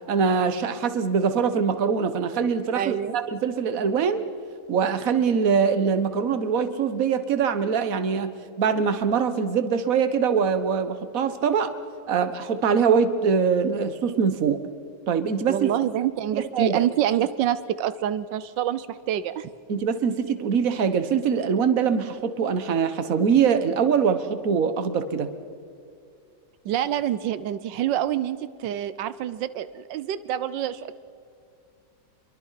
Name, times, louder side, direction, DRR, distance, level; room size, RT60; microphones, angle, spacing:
voice 1, 0.1-3.0 3.3-4.2 4.7-11.7 12.1-14.7 15.1-15.7 16.4-16.8 19.7-25.3, right 6 dB, 55° right, 10 dB, 1.6 m, -23 dB
voice 2, 2.7-3.2 15.5-19.5 26.6-31.0, right 11 dB, 90° right, 14 dB, 1.4 m, -27 dB
26.5 x 23.0 x 5.8 m, 2.4 s
omnidirectional pair, 1.9 m